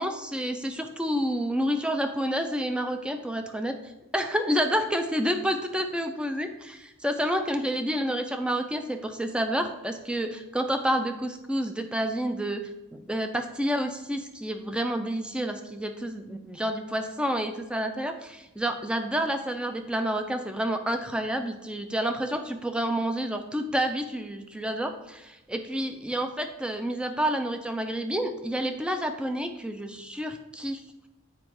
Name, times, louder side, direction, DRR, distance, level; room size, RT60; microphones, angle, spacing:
voice 1, 0.0-12.6 12.9-30.8, equal, 5° right, 6 dB, 0.5 m, -29 dB
7.5 x 4.7 x 4.7 m, 0.99 s
head